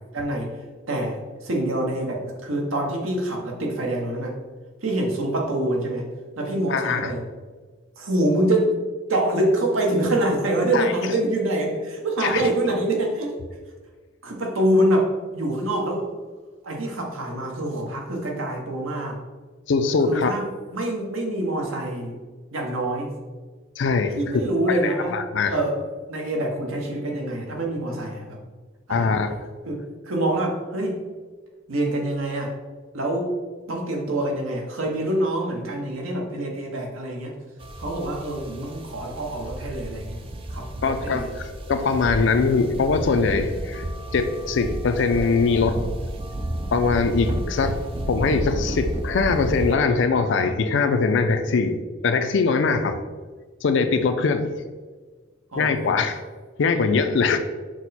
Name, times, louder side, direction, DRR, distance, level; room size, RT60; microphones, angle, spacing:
voice 1, 0.1-0.6 0.9-4.4 4.8-6.1 6.4-7.2 8.0-8.8 9.1-13.3 14.2-16.1 16.6-19.2 20.0-22.2 22.5-23.2 24.2-25.2 25.5-25.8 26.1-28.4 28.9-29.2 29.6-31.0 31.7-32.5 32.9-33.3 33.7-37.3 37.8-40.2 40.5-41.3 55.5-56.0, right 1 dB, 85° right, 0 dB, 0.9 m, -25 dB
voice 2, 6.7-7.1 10.7-10.9 12.2-12.4 19.7-20.3 23.8-24.2 24.7-25.5 28.9-29.3 40.8-43.8 44.1-45.8 46.7-47.8 48.1-53.0 53.6-54.5 55.6-56.2 56.6-57.4, left 4 dB, 60° left, 8 dB, 0.4 m, -22 dB
sound 1, 37.6-49.8, right 1 dB, 25° right, 0.3 m, -31 dB
6.1 x 2.1 x 4.0 m, 1.4 s
head